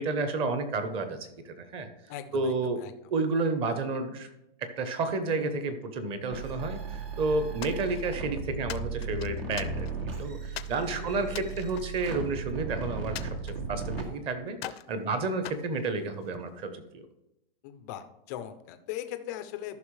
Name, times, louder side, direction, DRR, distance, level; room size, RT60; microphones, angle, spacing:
voice 1, 0.0-1.9 2.3-2.8 3.1-4.3 4.6-17.1, right 3 dB, 20° right, 9 dB, 0.8 m, -31 dB
voice 2, 2.1-2.9 10.9-11.6 17.6-19.8, left 11 dB, 20° left, 9 dB, 0.4 m, -40 dB
sound 1, 6.3-14.0, right 4 dB, 70° right, 2.2 m, -36 dB
sound 2, 7.6-8.3 8.7-10.1 10.6-10.8 11.3-12.6 13.2-14.2 14.6-14.9 15.4-16.5, left 11 dB, 85° left, 0.6 m, -42 dB
13.5 x 5.8 x 3.2 m, 0.87 s
hypercardioid pair, 160°, 29 cm